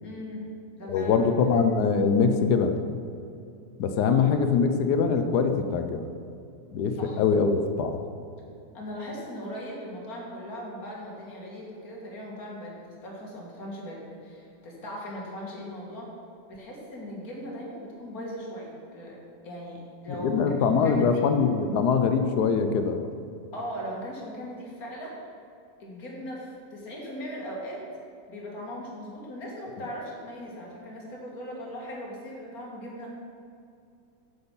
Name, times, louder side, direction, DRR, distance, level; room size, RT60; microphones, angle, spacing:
voice 1, 0.0-1.2 4.0-4.2 7.0-7.2 8.7-16.1 16.5-19.2 19.4-21.2 23.5-25.2 25.8-27.8 28.3-33.1, equal, 50° left, -3 dB, 2.2 m, -39 dB
voice 2, 0.9-2.8 3.8-6.1 6.7-8.0 20.1-23.0, left 5 dB, 65° left, 7 dB, 1.1 m, -23 dB
7.9 x 7.0 x 5.4 m, 2.5 s
omnidirectional pair, 2.0 m